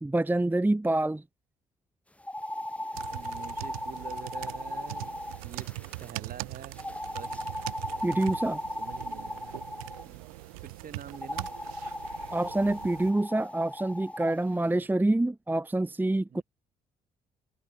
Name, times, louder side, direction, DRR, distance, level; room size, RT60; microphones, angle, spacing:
voice 1, 0.0-1.2 8.0-8.6 12.3-16.4, right 2 dB, 10° right, 0.8 m, -26 dB
sound 1, 2.2-6.1 6.8-10.1 11.1-14.4, left 1 dB, 5° left, 1.2 m, -37 dB
sound 2, 2.9-13.1, right 23 dB, 85° right, 2.6 m, -42 dB
voice 2, 3.1-5.7 6.0-6.8 7.1-7.4 8.8-9.5 10.0-11.5 14.6-14.9 16.3-16.4, right 8 dB, 55° right, 6.7 m, -46 dB
hypercardioid pair, 50°, 18 cm